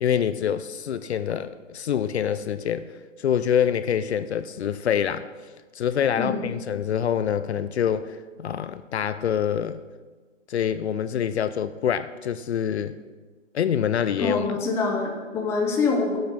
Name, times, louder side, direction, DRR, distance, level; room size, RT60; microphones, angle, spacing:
voice 1, 0.0-5.3 5.7-9.8 10.5-12.9 13.5-14.4, left 8 dB, 60° left, 13 dB, 0.5 m, -26 dB
voice 2, 6.2-6.5 14.2-16.2, left 4 dB, 5° left, 1 dB, 0.6 m, -25 dB
8.8 x 5.9 x 6.9 m, 1.4 s
hypercardioid pair, 145°, 38 cm